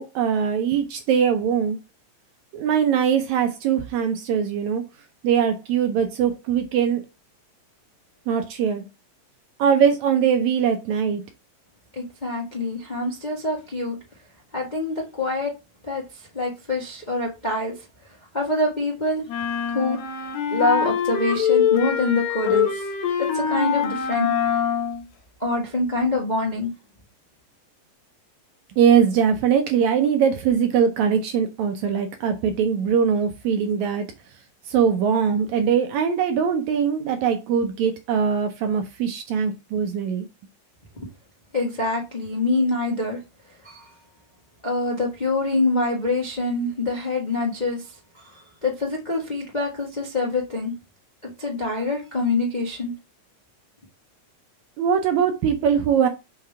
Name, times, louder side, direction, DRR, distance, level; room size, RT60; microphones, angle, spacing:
voice 1, 0.0-1.8 2.5-4.8 5.2-7.0 8.3-8.8 9.6-11.2 28.8-34.1 34.7-40.3 54.8-56.1, right 7 dB, 75° right, 1.7 m, -21 dB
voice 2, 11.9-14.0 14.5-15.5 15.8-17.8 18.3-19.2 19.7-20.0 20.5-22.9 23.2-24.6 25.4-26.7 41.5-43.2 43.6-43.9 44.6-50.7 51.4-52.9, left 2 dB, 90° left, 0.4 m, -25 dB
sound 1, 19.3-25.0, left 8 dB, 75° left, 2.6 m, -24 dB
5.6 x 3.6 x 5.4 m
omnidirectional pair, 3.9 m